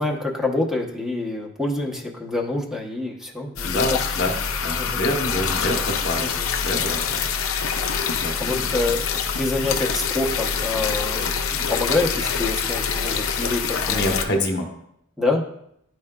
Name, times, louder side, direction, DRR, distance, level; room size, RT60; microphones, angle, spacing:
voice 1, 0.0-4.2 4.8-5.0 6.2-6.5 8.4-14.0 15.2-15.4, left 2 dB, 5° right, -1 dB, 0.8 m, -26 dB
sound 1, 3.6-14.2, left 6 dB, 80° left, 0.6 m, -25 dB
voice 2, 3.6-4.4 4.6-6.3 6.6-7.2 8.2-8.6 13.9-14.7, left 1 dB, 60° left, 2 dB, 1.1 m, -26 dB
11.0 x 4.6 x 2.2 m, 0.75 s
head